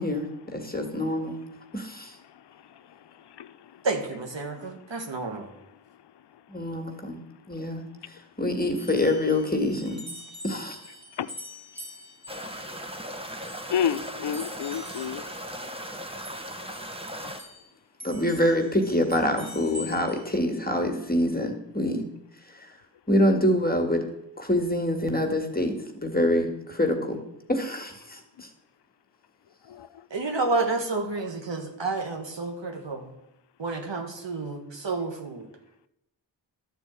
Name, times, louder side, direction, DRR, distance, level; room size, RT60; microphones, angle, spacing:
voice 1, 0.0-1.4 1.7-2.2 6.5-7.2 7.5-10.0 10.4-10.8 18.0-22.0 22.5-22.7 23.1-24.0 24.4-27.2 27.5-28.5, left 1 dB, 20° left, 1.9 m, -26 dB
voice 2, 3.3-3.8 11.2-11.3 13.7-15.2 17.2-17.3 29.7-29.9, left 9 dB, 60° left, 0.6 m, -30 dB
voice 3, 3.8-5.5 30.1-33.1 33.6-35.5, right 3 dB, 70° right, 1.8 m, -30 dB
sound 1, 8.8-17.7 18.0-20.3, left 1 dB, 35° right, 2.9 m, -45 dB
sound 2, 12.3-17.4, equal, 10° right, 1.4 m, -37 dB
12.0 x 4.5 x 8.3 m
cardioid pair, 45°, 45 cm